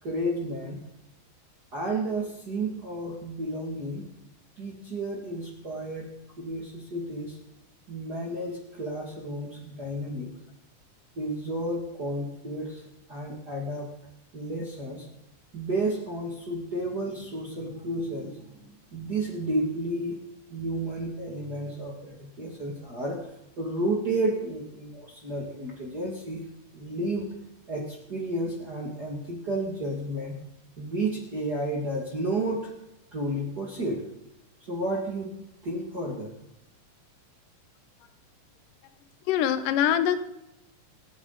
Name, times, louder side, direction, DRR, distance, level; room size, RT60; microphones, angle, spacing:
voice 1, 0.0-0.8 1.7-4.0 4.6-6.1 6.4-7.4 7.9-10.3 11.2-12.8 13.1-13.9 14.3-15.1 15.5-20.2 20.5-23.2 23.6-26.4 26.7-27.3 27.7-30.4 30.8-32.7 33.1-34.0 34.7-36.3, right 1 dB, 30° right, -3 dB, 2.6 m, -32 dB
voice 2, 39.3-40.2, left 10 dB, 90° left, 11 dB, 2.4 m, -23 dB
27.5 x 11.0 x 4.1 m, 0.87 s
omnidirectional pair, 3.7 m